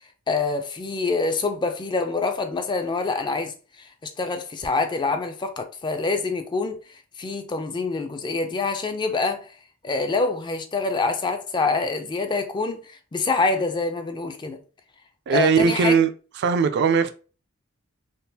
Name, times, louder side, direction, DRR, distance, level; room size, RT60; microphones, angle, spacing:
voice 1, 0.3-6.8 7.2-9.5 9.8-14.6 15.3-15.9, left 3 dB, 20° left, 0.3 m, -26 dB
voice 2, 15.3-16.1 16.4-17.1, right 5 dB, 55° right, 0.3 m, -19 dB
3.6 x 2.4 x 2.6 m
head